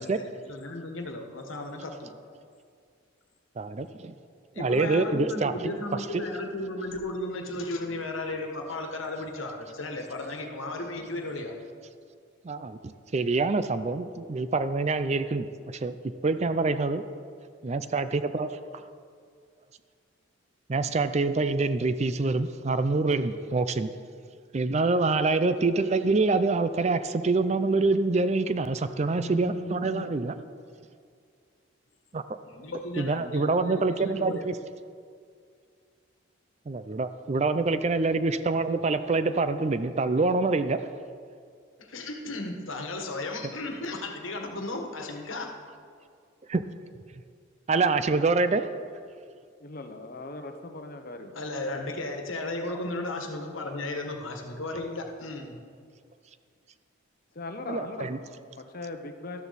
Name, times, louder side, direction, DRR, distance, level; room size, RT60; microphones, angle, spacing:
voice 1, 0.0-2.1 4.5-11.5 29.1-30.3 32.4-34.4 41.8-45.6 51.3-55.6, left 2 dB, 80° left, 3 dB, 1.5 m, -35 dB
voice 2, 3.6-4.1 4.6-5.8 12.4-16.0 16.2-17.0 17.6-18.5 20.7-23.9 24.5-30.4 32.1-32.2 33.0-34.5 36.7-40.8 46.5-46.6 47.7-48.6 57.7-58.2, right 3 dB, 35° right, 11 dB, 0.4 m, -26 dB
voice 3, 49.6-51.4 53.7-53.8 57.3-59.4, left 2 dB, 45° left, 6 dB, 0.9 m, -39 dB
13.0 x 12.5 x 4.1 m, 2.2 s
head